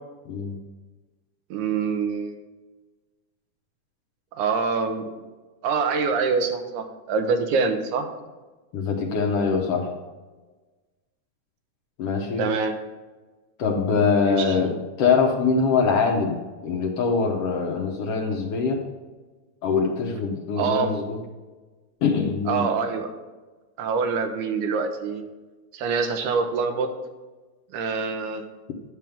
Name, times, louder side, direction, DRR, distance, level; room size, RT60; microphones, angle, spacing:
voice 1, 0.3-0.6 8.7-10.0 12.0-12.5 13.6-18.8 19.6-21.2 22.0-22.7, left 5 dB, 65° left, 2 dB, 1.7 m, -23 dB
voice 2, 1.5-2.4 4.3-5.1 5.6-8.1 12.4-12.8 14.3-14.6 20.6-20.9 22.5-23.1 23.8-25.2 25.7-26.9 27.7-28.4, right 5 dB, 90° right, 6 dB, 2.5 m, -25 dB
10.5 x 7.4 x 3.5 m, 1.3 s
omnidirectional pair, 3.4 m